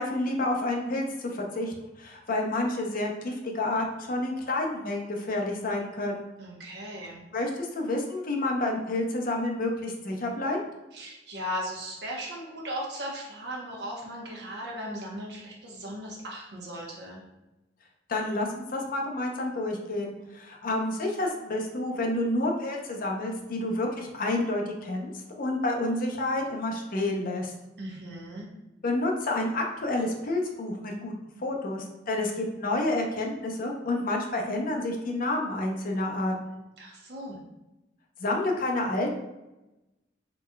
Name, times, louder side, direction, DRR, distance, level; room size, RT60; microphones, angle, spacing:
voice 1, 0.0-6.3 7.3-10.6 18.1-27.5 28.8-31.1 31.4-36.6 38.2-39.1, left 2 dB, 50° left, 0 dB, 0.6 m, -29 dB
voice 2, 6.4-7.2 10.9-17.2 27.8-28.5 36.8-37.4, equal, 65° right, -2 dB, 0.9 m, -37 dB
4.0 x 3.2 x 2.2 m, 0.98 s
head